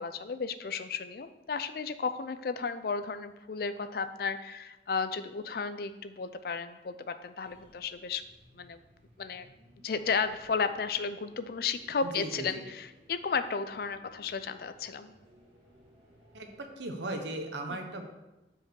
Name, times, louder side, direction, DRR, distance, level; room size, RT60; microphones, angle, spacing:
voice 1, 0.0-8.2 8.6-8.8 9.2-9.5 9.8-15.1 17.7-17.8, left 5 dB, 55° left, 11 dB, 0.4 m, -33 dB
sound 1, 7.3-16.7, equal, 35° right, 1.6 m, -60 dB
voice 2, 12.0-12.7 16.3-18.0, right 2 dB, 85° right, 4 dB, 0.9 m, -37 dB
5.1 x 4.8 x 6.2 m, 1.0 s
head